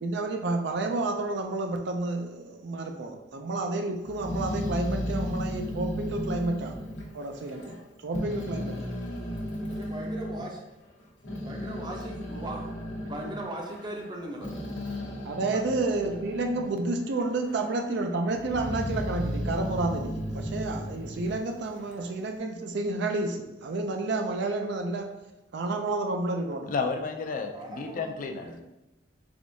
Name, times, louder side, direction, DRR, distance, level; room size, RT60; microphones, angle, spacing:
voice 1, 0.0-6.7 7.1-7.8 8.0-8.8 15.2-25.1 25.5-26.7, right 2 dB, 65° right, 4 dB, 0.4 m, -30 dB
Growling, 4.0-7.8 8.1-10.4 11.0-16.8 17.2-17.9 18.3-22.1, equal, 90° left, 0.9 m, -35 dB
voice 2, 9.7-10.6 11.4-12.7 13.1-14.8 27.5-28.6, right 1 dB, 25° right, 0 dB, 0.6 m, -39 dB
voice 3, 26.7-28.6, left 4 dB, 45° left, 4 dB, 0.4 m, -32 dB
3.5 x 3.4 x 2.6 m, 0.96 s
head